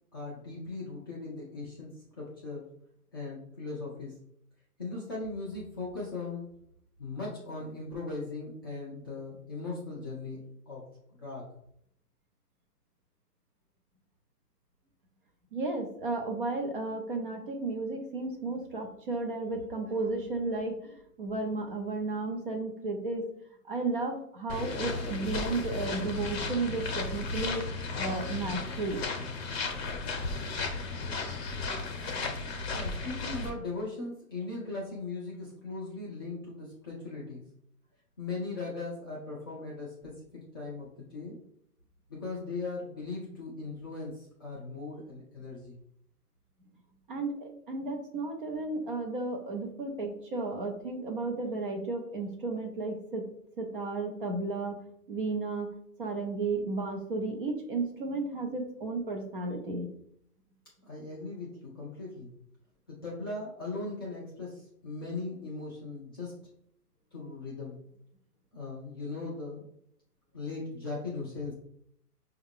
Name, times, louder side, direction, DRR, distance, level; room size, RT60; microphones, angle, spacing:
voice 1, 0.1-2.7 3.1-4.2 4.8-6.5 7.0-10.4 10.7-11.5 32.7-37.4 38.2-41.3 42.1-45.7 60.8-62.3 62.9-66.3 67.1-67.8 68.5-69.6 70.3-71.5, left 3 dB, 15° left, -8 dB, 0.5 m, -39 dB
voice 2, 15.5-23.3 23.7-27.7 27.9-29.0 47.1-53.3 53.6-54.8 55.1-55.7 56.0-59.9, right 3 dB, 35° right, 2 dB, 0.6 m, -33 dB
sound 1, 24.5-33.5, left 3 dB, 40° left, 0.8 m, -34 dB
5.3 x 2.4 x 3.5 m, 0.70 s
hypercardioid pair, 145°, 47 cm